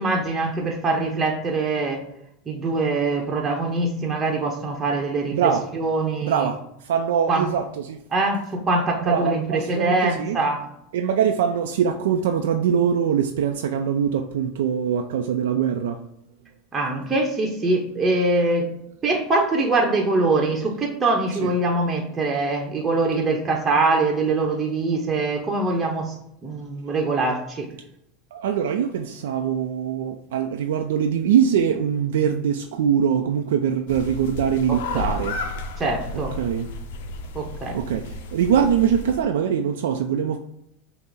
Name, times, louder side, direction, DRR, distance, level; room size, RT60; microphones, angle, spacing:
voice 1, 0.0-2.0 2.5-6.5 7.3-7.4 8.1-10.6 16.7-18.7 19.0-26.1 26.4-27.7 34.7-35.1 35.8-36.4 37.3-37.8, right 3 dB, 20° right, 0 dB, 0.8 m, -23 dB
voice 2, 5.3-5.7 6.2-8.0 9.0-10.4 10.9-16.0 21.4-21.5 28.3-35.4 36.4-36.7 37.7-40.4, right 8 dB, 90° right, 4 dB, 0.3 m, -23 dB
sound 1, 33.9-39.2, left 3 dB, 75° left, 0.5 m, -33 dB
5.6 x 2.0 x 4.0 m, 0.76 s
supercardioid pair, 125°, 0 cm